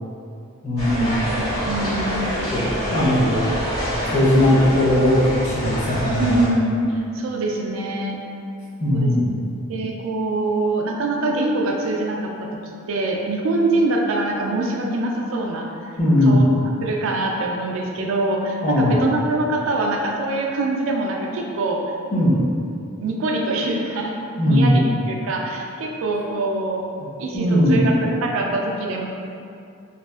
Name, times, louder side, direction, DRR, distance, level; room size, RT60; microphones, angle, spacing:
voice 1, 0.6-1.2 2.5-3.4 4.1-6.3 8.8-9.2 16.0-16.4 18.6-18.9 22.1-22.4 24.4-24.8 27.3-27.8, left 1 dB, 35° left, -8 dB, 0.6 m, -18 dB
sound 1, 0.8-6.5, equal, 80° left, 1.3 m, -26 dB
voice 2, 1.7-2.1 6.2-6.8 7.1-8.2 8.9-9.3 9.7-12.6 12.9-15.7 16.3-16.4 16.8-21.8 23.0-26.9 27.2-29.1, right 2 dB, 65° right, 0 dB, 0.3 m, -24 dB
2.7 x 2.4 x 2.3 m, 2.5 s
head